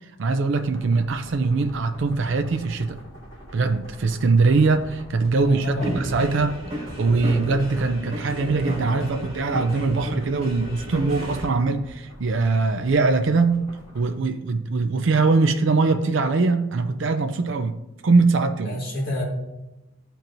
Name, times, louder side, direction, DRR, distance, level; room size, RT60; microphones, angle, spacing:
voice 1, 0.2-3.0 3.5-17.7 18.0-18.8, right 3 dB, 60° right, 0.4 m, -22 dB
sound 1, 0.5-14.2, equal, 75° left, 2.0 m, -45 dB
voice 2, 5.4-6.0 18.6-19.2, left 1 dB, 45° left, 1.8 m, -28 dB
sound 2, 5.8-11.5, equal, 30° right, 2.3 m, -33 dB
13.0 x 4.5 x 2.6 m
head